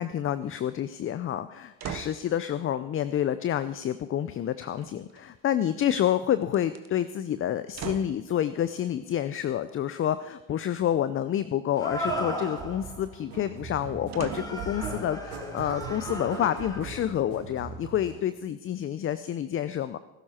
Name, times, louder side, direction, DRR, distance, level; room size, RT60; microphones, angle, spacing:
voice 1, 0.0-20.0, left 10 dB, 30° left, 13 dB, 0.6 m, -28 dB
sound 1, 1.8-2.3 4.7-5.5 6.4-6.9 7.7-8.2 11.8-12.3 14.1-14.7 15.3-15.4, right 9 dB, 40° right, 1.3 m, -40 dB
sound 2, 8.6-8.7 11.8-13.0 14.2-16.8, equal, 10° left, 2.5 m, -36 dB
sound 3, 11.9-18.2, right 4 dB, 70° right, 4.1 m, -40 dB
19.0 x 12.0 x 4.4 m, 1.0 s
hypercardioid pair, 85°, 41 cm